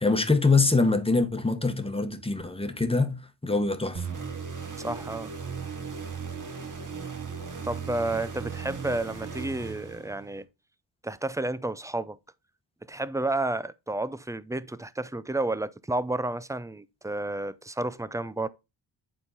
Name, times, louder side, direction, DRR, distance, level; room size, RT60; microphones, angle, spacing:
voice 1, 0.0-4.1, left 3 dB, 10° left, 1.2 m, -24 dB
sound 1, 3.9-10.4, right 6 dB, 40° right, 1.5 m, -37 dB
voice 2, 4.8-5.3 7.6-10.5 11.0-12.2 12.9-18.5, right 2 dB, 5° right, 0.4 m, -31 dB
8.8 x 3.7 x 4.0 m
supercardioid pair, 55°, 49 cm